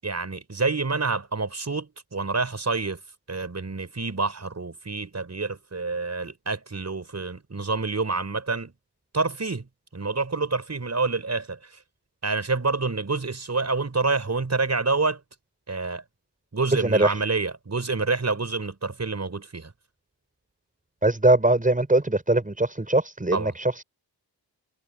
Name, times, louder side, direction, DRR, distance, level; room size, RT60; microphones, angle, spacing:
voice 1, 0.0-3.0 3.3-8.7 9.1-11.8 12.2-15.2 15.7-16.0 16.5-19.7 23.3-23.6, right 3 dB, 40° right, 6.1 m, -27 dB
voice 2, 16.8-17.1 21.0-23.8, right 2 dB, 20° right, 6.7 m, -21 dB
wide cardioid pair, 115°, 42 cm